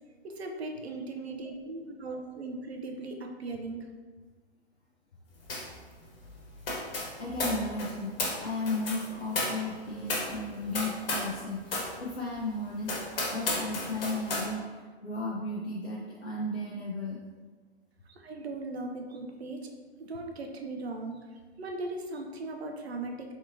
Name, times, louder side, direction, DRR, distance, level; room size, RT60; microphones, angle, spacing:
voice 1, 0.2-3.9 18.1-19.7 20.0-23.3, right 2 dB, 75° right, 3 dB, 0.7 m, -38 dB
sound 1, 5.5-5.8 6.0-11.4 11.7-11.9 12.4-12.5 12.8-14.5, left 2 dB, 60° left, 1.3 m, -33 dB
voice 2, 7.2-17.2, left 2 dB, 80° left, -4 dB, 0.7 m, -35 dB
4.0 x 3.6 x 2.6 m, 1.4 s
figure-of-eight pair, 105°, 32 cm